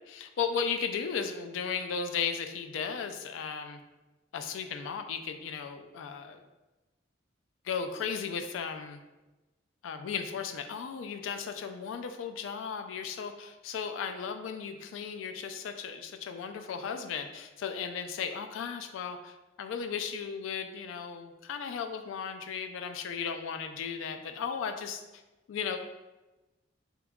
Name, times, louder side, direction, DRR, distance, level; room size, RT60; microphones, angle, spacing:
voice 1, 0.1-3.8 4.3-6.4 7.6-9.0 9.8-25.2 25.5-25.8, left 6 dB, 90° left, 7 dB, 0.3 m, -35 dB
2.8 x 2.2 x 3.5 m, 1.1 s
head